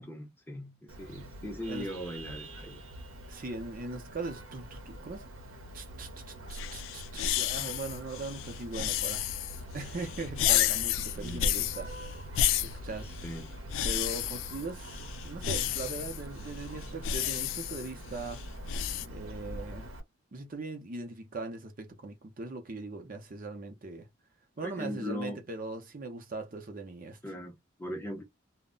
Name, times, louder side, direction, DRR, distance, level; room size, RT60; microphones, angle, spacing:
voice 1, 0.0-2.8 11.2-11.6 13.2-13.5 24.6-25.4 27.2-28.2, equal, 10° left, 0.6 m, -39 dB
Vehicle horn car horn honking, 0.9-20.0, equal, 90° right, 0.8 m, -44 dB
voice 2, 3.3-5.3 5.7-9.2 9.7-12.2 12.6-13.1 13.8-18.4 19.1-19.9 20.3-24.1 24.6-27.2, right 3 dB, 45° right, 0.6 m, -40 dB
sound 1, 6.5-19.1, left 10 dB, 70° left, 0.3 m, -32 dB
2.1 x 2.0 x 3.7 m
head